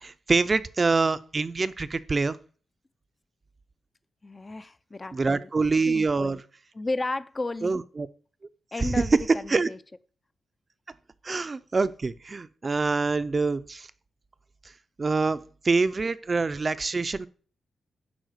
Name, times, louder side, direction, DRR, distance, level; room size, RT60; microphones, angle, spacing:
voice 1, 0.0-2.4 5.1-6.4 7.6-8.1 8.8-9.0 9.5-9.7 11.2-13.9 15.0-15.4 15.6-17.3, right 4 dB, 25° right, 0.5 m, -25 dB
voice 2, 4.2-5.5 5.8-6.4 6.7-7.8 8.7-9.8, left 2 dB, 20° left, 0.5 m, -33 dB
11.5 x 4.8 x 8.0 m
wide cardioid pair, 165°, 0 cm